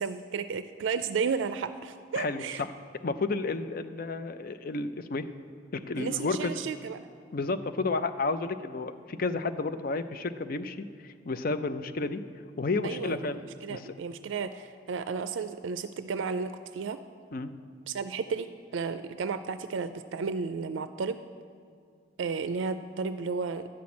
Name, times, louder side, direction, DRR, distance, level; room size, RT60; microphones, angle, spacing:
voice 1, 0.0-2.6 6.0-7.0 12.8-13.2 13.6-17.0 17.9-21.2 22.2-23.7, right 5 dB, 80° right, 11 dB, 0.4 m, -33 dB
voice 2, 2.2-2.7 3.0-5.3 5.7-6.5 7.3-12.2 12.6-13.4 13.7-13.9 17.3-17.5, left 3 dB, 50° left, 10 dB, 0.5 m, -31 dB
11.5 x 6.0 x 8.4 m, 2.3 s
head